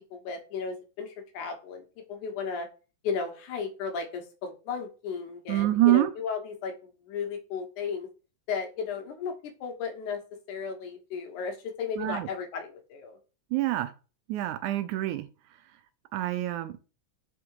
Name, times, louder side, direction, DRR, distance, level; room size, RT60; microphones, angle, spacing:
voice 1, 0.1-2.7 3.0-8.1 8.5-9.3 9.6-10.2 10.5-13.2, left 5 dB, 85° left, 2.7 m, -34 dB
voice 2, 5.5-6.1 12.0-12.3 13.5-13.9 14.3-15.3 16.1-16.8, right 16 dB, 85° right, 2.1 m, -26 dB
6.0 x 3.7 x 4.6 m
omnidirectional pair, 3.4 m